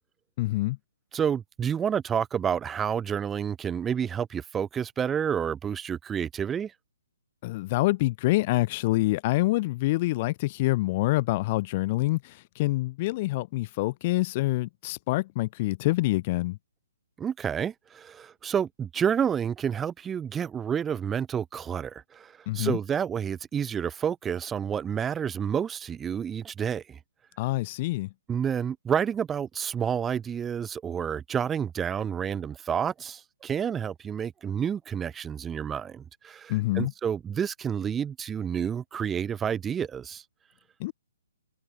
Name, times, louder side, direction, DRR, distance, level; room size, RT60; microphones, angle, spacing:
voice 1, 0.4-0.8 7.4-16.6 22.5-22.8 27.4-28.1 36.5-36.9 40.8-40.9, left 19 dB, 30° left, 0.5 m, -26 dB
voice 2, 1.1-6.7 17.2-27.0 28.3-40.2, right 8 dB, 10° right, 0.7 m, -29 dB
hypercardioid pair, 160°, 0 cm